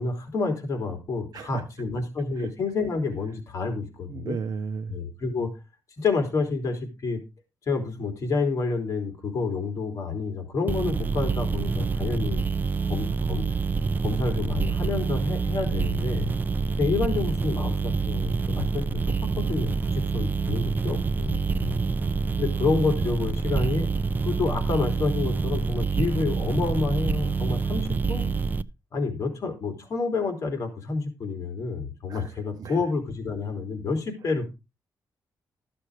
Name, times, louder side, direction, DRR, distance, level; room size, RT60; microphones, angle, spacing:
voice 1, 0.0-4.4 4.9-5.5 6.0-7.2 7.7-12.4 12.9-13.5 14.0-16.3 16.8-18.3 18.6-21.7 22.4-23.9 24.2-28.3 28.9-34.5, left 4 dB, 50° left, 4 dB, 3.3 m, -29 dB
voice 2, 4.1-5.0 32.1-32.3 32.6-32.8, right 6 dB, 60° right, 9 dB, 0.8 m, -34 dB
sound 1, 10.7-28.6, right 4 dB, 25° right, 0.5 m, -27 dB
13.5 x 6.8 x 4.8 m, 0.26 s
wide cardioid pair, 165°, 7 cm